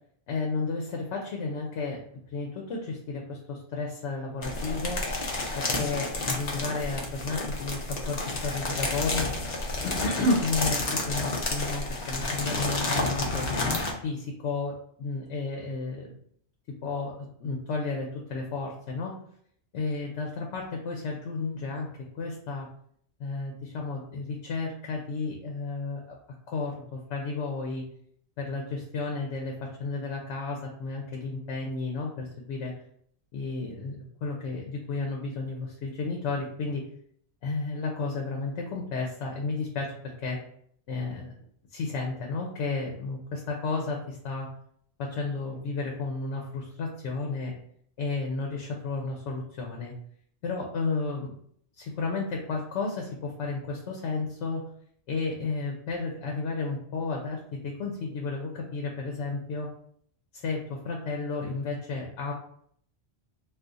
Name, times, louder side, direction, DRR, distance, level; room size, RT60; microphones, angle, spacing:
voice 1, 0.3-2.0 2.3-5.0 5.6-9.3 9.8-13.5 14.0-16.1 16.8-19.1 19.7-21.9 22.1-22.7 23.2-26.1 26.5-27.8 28.4-32.7 33.3-36.8 37.4-40.4 40.9-41.3 41.7-44.5 45.0-47.5 48.0-49.9 50.4-51.3 51.8-54.6 55.1-59.7 60.3-62.3, left 3 dB, 85° left, 1 dB, 0.9 m, -32 dB
sound 1, 4.4-13.9, left 2 dB, 45° left, 0.6 m, -30 dB
2.4 x 2.4 x 3.8 m, 0.64 s
omnidirectional pair, 1.1 m